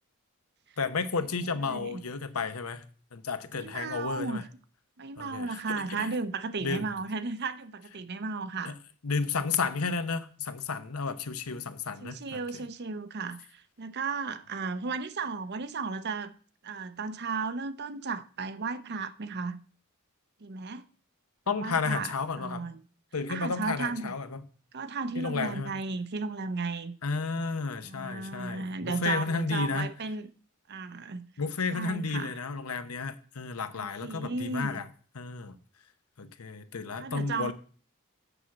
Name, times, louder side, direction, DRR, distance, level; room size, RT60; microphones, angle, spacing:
voice 1, 0.8-2.8 3.1-4.4 5.2-6.1 6.6-6.9 8.6-8.8 9.0-12.6 21.5-22.7 23.1-24.4 25.2-25.7 27.0-29.9 31.4-34.9 35.1-35.6 36.2-37.5, left 4 dB, 90° left, 0.9 m, -32 dB
voice 2, 1.6-2.0 3.5-4.5 5.0-8.7 12.0-16.3 16.6-19.6 20.4-20.9 21.5-22.1 22.4-22.8 23.3-24.1 24.7-26.9 27.8-30.3 30.7-31.3 31.7-32.3 33.8-34.8 37.0-37.5, right 4 dB, 50° right, 0.7 m, -35 dB
7.0 x 6.3 x 7.1 m
head